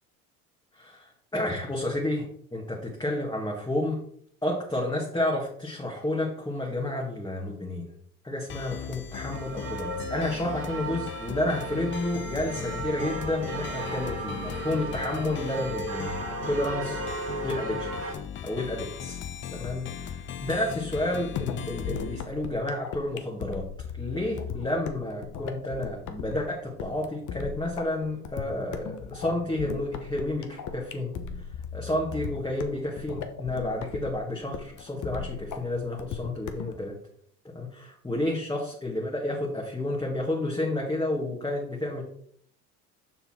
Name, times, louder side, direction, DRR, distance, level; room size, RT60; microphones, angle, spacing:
voice 1, 0.7-2.3 2.5-4.0 4.4-7.9 8.2-17.0 17.4-18.2 18.4-19.2 19.5-23.7 24.0-31.1 31.7-36.9 37.5-42.0, left 1 dB, 10° left, -3 dB, 1.9 m, -30 dB
sound 1, 8.5-22.2, left 9 dB, 25° left, 0.5 m, -38 dB
sound 2, 9.3-18.1, right 2 dB, 30° right, 2.1 m, -35 dB
sound 3, 21.4-36.8, left 7 dB, 40° left, 1.2 m, -37 dB
6.9 x 5.8 x 4.4 m, 0.62 s
hypercardioid pair, 70°, 46 cm